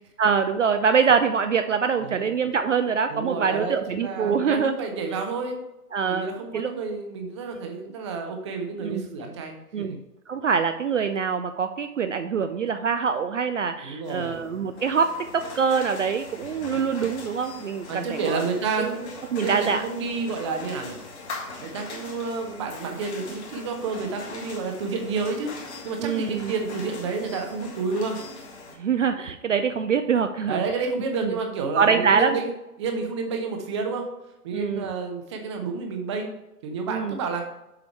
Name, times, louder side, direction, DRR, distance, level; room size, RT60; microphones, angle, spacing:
voice 1, 0.2-4.8 5.9-6.7 8.8-9.1 9.7-10.0 10.3-18.4 18.8-18.9 19.3-19.8 26.0-26.5 28.8-30.6 31.2-31.3 31.8-32.4 34.5-34.9 36.9-37.2, right 6 dB, 55° right, 8 dB, 0.5 m, -24 dB
voice 2, 3.1-5.6 6.1-10.0 13.8-14.4 16.6-16.9 17.9-21.0 21.6-25.5 25.8-28.2 30.5-32.5 32.8-34.0 34.4-36.3 36.6-37.5, right 4 dB, 20° right, 4 dB, 0.7 m, -30 dB
sound 1, 14.0-28.8, left 3 dB, 45° left, 1.8 m, -41 dB
7.2 x 4.9 x 4.4 m, 0.94 s
figure-of-eight pair, 125°, 47 cm